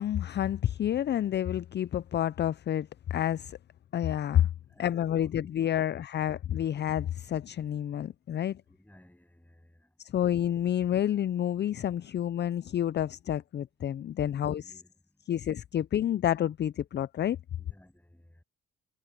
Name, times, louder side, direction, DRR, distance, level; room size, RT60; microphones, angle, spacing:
voice 1, 0.0-3.6 3.9-4.5 4.8-8.6 10.1-14.6 15.3-17.4, left 11 dB, 35° left, 0.4 m, -29 dB
voice 2, 4.7-5.9 8.6-9.9 14.3-15.0 17.6-18.4, left 1 dB, 5° left, 7.9 m, -59 dB
cardioid pair, 90°, 30 cm